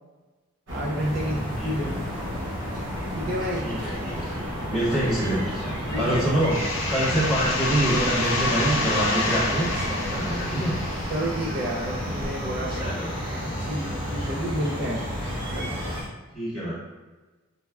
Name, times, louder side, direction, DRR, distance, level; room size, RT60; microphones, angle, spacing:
voice 1, 0.7-2.0 3.2-3.7 5.9-6.4 11.1-12.9 13.4-15.0 15.5-15.8, equal, 50° right, -3 dB, 0.4 m, -30 dB
sound 1, 0.7-16.0, equal, 65° right, 0.8 m, -32 dB
sound 2, 1.0-16.1, equal, 25° left, 0.7 m, -39 dB
voice 2, 1.2-2.0 3.6-10.7 12.7-13.1 14.2-14.4 16.3-16.7, right 1 dB, ahead, -9 dB, 0.9 m, -26 dB
sound 3, 6.5-12.0, left 2 dB, 75° left, 0.5 m, -29 dB
3.3 x 2.1 x 2.3 m, 1.2 s
head